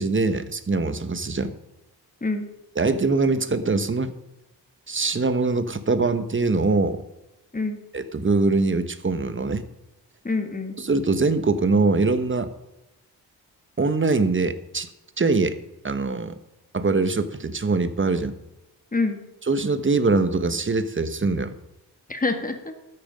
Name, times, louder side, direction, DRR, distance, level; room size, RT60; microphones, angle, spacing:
voice 1, 0.0-1.5 2.8-4.1 4.9-7.0 7.9-9.6 10.8-12.5 13.8-14.9 15.2-15.6 15.8-16.3 16.7-18.3 19.5-21.5, right 3 dB, 30° right, 11 dB, 1.2 m, -23 dB
voice 2, 7.5-7.8 10.2-10.8 18.9-19.2 22.1-22.7, left 3 dB, 20° left, 6 dB, 1.9 m, -26 dB
13.0 x 9.0 x 5.2 m, 0.93 s
cardioid pair, 70°, 40 cm